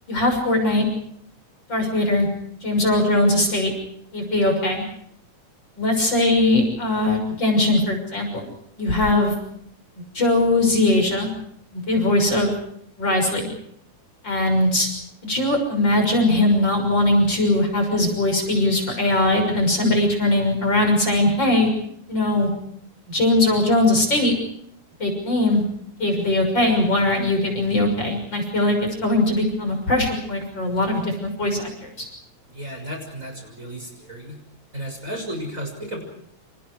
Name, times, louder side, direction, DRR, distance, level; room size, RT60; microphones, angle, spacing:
voice 1, 0.1-0.8 1.7-2.3 2.6-3.7 4.1-4.8 5.8-8.4 8.8-9.3 10.0-11.3 11.7-12.5 13.0-13.5 14.2-14.9 15.2-21.7 22.1-22.5 23.1-24.4 25.0-25.6 26.0-32.1, left 1 dB, 35° left, 3 dB, 7.0 m, -20 dB
voice 2, 32.5-34.4 34.7-36.0, equal, 25° right, 3 dB, 6.8 m, -33 dB
30.0 x 28.0 x 4.9 m, 0.69 s
omnidirectional pair, 3.3 m